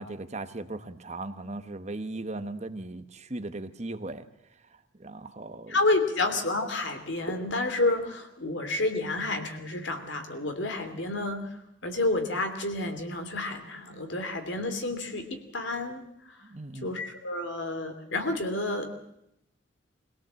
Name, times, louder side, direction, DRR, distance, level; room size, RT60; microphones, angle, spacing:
voice 1, 0.0-4.3 5.0-5.8 16.4-17.0, right 2 dB, 35° right, 10 dB, 1.1 m, -38 dB
voice 2, 5.7-11.5 11.8-16.0 16.8-18.9, left 2 dB, 65° left, 7 dB, 3.0 m, -30 dB
23.0 x 17.5 x 7.6 m, 0.78 s
head